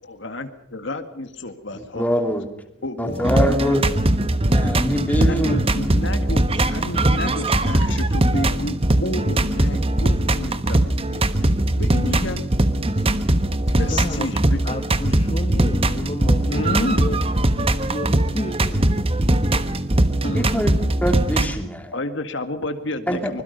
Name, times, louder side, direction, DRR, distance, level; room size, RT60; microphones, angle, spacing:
voice 1, 0.0-2.0 2.8-3.8 5.2-11.3 11.8-12.4 13.8-14.6 16.5-17.1 20.2-20.6 21.9-23.4, left 1 dB, 65° left, 8 dB, 1.9 m, -31 dB
voice 2, 1.7-2.5 3.0-3.9 4.5-5.6 20.3-20.7 21.0-21.9 23.1-23.4, equal, 10° left, 5 dB, 2.8 m, -23 dB
sound 1, 3.1-21.5, right 1 dB, 30° right, 1.3 m, -20 dB
voice 3, 13.7-14.3 14.6-17.2 17.8-18.8, left 1 dB, 30° left, 6 dB, 1.4 m, -32 dB
25.0 x 21.5 x 5.4 m, 0.81 s
head